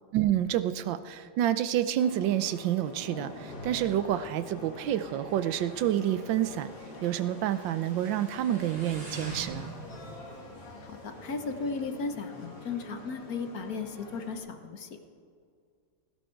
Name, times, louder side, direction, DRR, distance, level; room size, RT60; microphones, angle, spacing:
voice 1, 0.1-6.7 7.0-9.7, right 11 dB, 75° right, 13 dB, 1.4 m, -28 dB
sound 1, 2.0-14.4, left 2 dB, 75° left, 3.1 m, -46 dB
Motorcycle, 3.8-11.9, right 2 dB, 30° right, 3.1 m, -47 dB
voice 2, 10.9-15.0, left 4 dB, 55° left, 7 dB, 1.3 m, -35 dB
17.5 x 16.0 x 4.6 m, 2.2 s
omnidirectional pair, 2.1 m